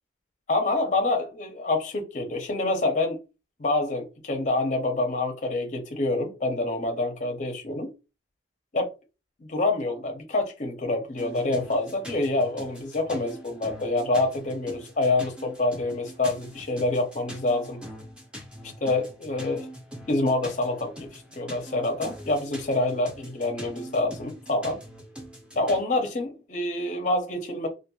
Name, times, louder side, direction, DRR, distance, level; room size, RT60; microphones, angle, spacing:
voice 1, 0.5-3.2 3.6-7.9 8.7-8.9 9.4-17.8 18.6-19.7 20.1-24.8 25.6-27.7, left 2 dB, 40° left, 0.5 m, -27 dB
sound 1, 11.2-25.8, equal, 5° right, 0.5 m, -43 dB
2.9 x 2.4 x 2.2 m
head